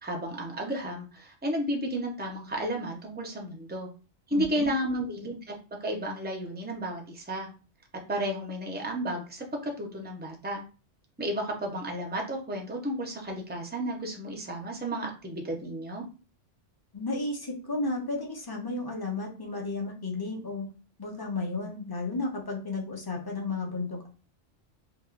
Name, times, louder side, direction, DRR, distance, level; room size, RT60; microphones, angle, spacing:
voice 1, 0.0-3.9 4.3-5.5 5.8-7.5 8.1-10.6 11.2-16.0, right 1 dB, 10° right, 1 dB, 0.4 m, -32 dB
voice 2, 4.3-4.7 16.9-20.7 21.0-24.1, left 3 dB, 20° left, 0 dB, 0.7 m, -33 dB
2.9 x 2.5 x 3.8 m, 0.35 s
omnidirectional pair, 1.3 m